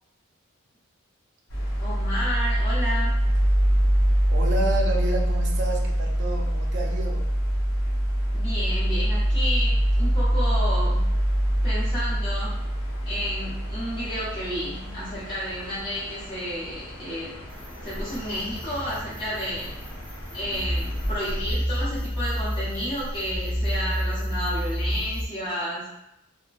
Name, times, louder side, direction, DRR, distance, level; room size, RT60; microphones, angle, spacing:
sound 1, 1.5-21.4, equal, 70° left, 0.7 m, -25 dB
voice 1, 1.8-3.1 8.3-11.1 11.6-12.5 13.0-17.4 17.8-19.7 20.3-25.9, equal, 25° left, -12 dB, 0.9 m, -31 dB
voice 2, 4.3-7.2, right 2 dB, 60° right, 1 dB, 0.5 m, -30 dB
sound 2, 17.5-25.3, equal, 5° left, 0.3 m, -30 dB
2.9 x 2.2 x 2.4 m, 0.86 s
head